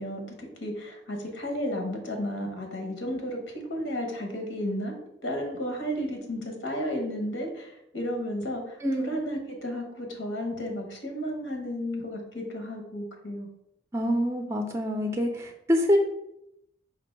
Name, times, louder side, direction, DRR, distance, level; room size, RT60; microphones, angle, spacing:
voice 1, 0.0-3.4 3.7-4.9 5.2-13.5, equal, 90° left, 3 dB, 1.0 m, -33 dB
voice 2, 8.8-9.2 13.9-16.0, equal, 15° right, 3 dB, 0.4 m, -26 dB
4.5 x 2.5 x 4.4 m, 0.80 s
head